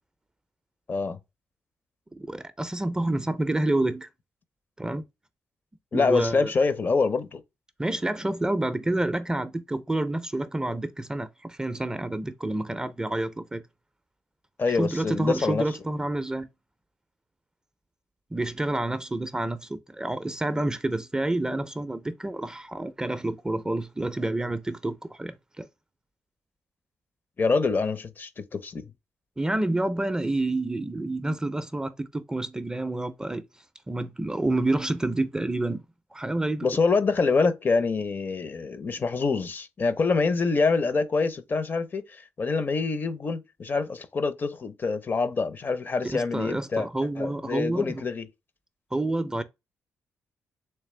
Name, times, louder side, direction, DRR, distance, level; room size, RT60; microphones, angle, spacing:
voice 1, 2.1-4.1 4.8-5.0 5.9-6.5 7.8-13.6 14.7-16.5 18.3-25.7 29.4-33.4 33.9-35.9 36.1-36.7 46.0-48.0 48.9-49.4, right 2 dB, 15° right, 0.4 m, -28 dB
voice 2, 5.9-7.4 14.6-15.6 27.4-28.9 36.6-46.9 47.2-48.3, left 4 dB, 40° left, 0.5 m, -26 dB
3.3 x 3.3 x 3.1 m
cardioid pair, 85°, 5 cm